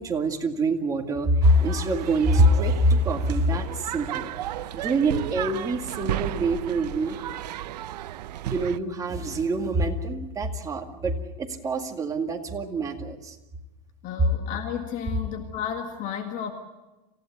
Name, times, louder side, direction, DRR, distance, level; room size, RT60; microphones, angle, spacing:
voice 1, 0.0-4.3 4.7-7.2 8.4-13.3, right 1 dB, 15° right, 3 dB, 2.2 m, -25 dB
sound 1, 1.4-8.8, right 12 dB, 85° right, 0.9 m, -34 dB
voice 2, 14.0-16.5, left 8 dB, 40° left, 5 dB, 1.9 m, -32 dB
27.5 x 15.5 x 8.2 m, 1.1 s
supercardioid pair, 145°, 21 cm